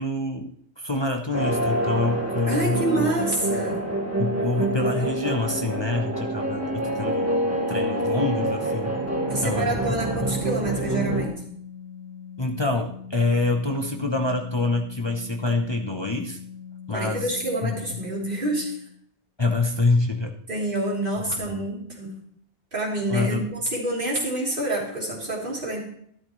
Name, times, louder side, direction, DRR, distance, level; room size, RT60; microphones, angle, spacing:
voice 1, 0.0-3.1 4.2-8.9 9.4-10.0 12.4-16.4 16.9-17.3 17.6-17.7 19.4-20.4 21.4-21.6 23.1-23.5, left 2 dB, 25° left, 3 dB, 0.8 m, -26 dB
sound 1, 1.3-11.3, right 1 dB, 15° right, 1.8 m, -26 dB
voice 2, 2.5-3.9 9.3-11.4 16.9-18.8 20.5-22.2 22.7-25.8, right 1 dB, 50° right, -5 dB, 3.5 m, -27 dB
Organ, 8.5-19.1, left 8 dB, 50° left, 1.9 m, -42 dB
13.0 x 12.5 x 3.2 m, 0.67 s
omnidirectional pair, 1.1 m